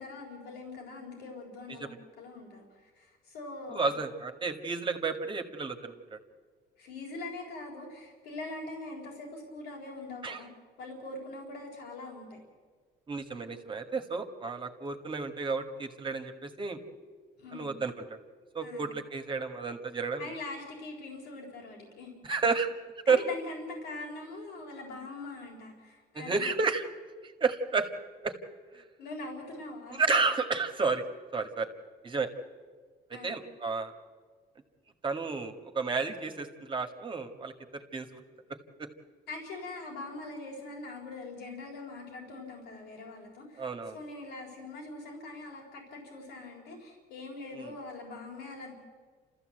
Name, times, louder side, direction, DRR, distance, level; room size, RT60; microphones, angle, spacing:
voice 1, 0.0-3.9 6.8-10.5 10.8-12.4 17.4-17.8 18.6-18.9 20.2-22.1 23.0-26.5 29.0-30.0 33.1-33.4 39.3-48.7, left 2 dB, 85° left, -4 dB, 4.2 m, -42 dB
voice 2, 3.7-6.2 10.2-10.4 13.1-16.8 17.5-18.2 18.5-20.3 22.2-22.7 23.1-23.2 26.1-26.8 27.2-27.9 28.2-28.3 28.7-28.8 30.0-31.0 31.3-31.7 32.0-32.3 33.2-33.9 35.0-38.2 43.6-44.0 47.5-47.7, right 4 dB, 30° right, 6 dB, 1.8 m, -31 dB
30.0 x 14.0 x 7.9 m, 1.5 s
cardioid pair, 110°, 17 cm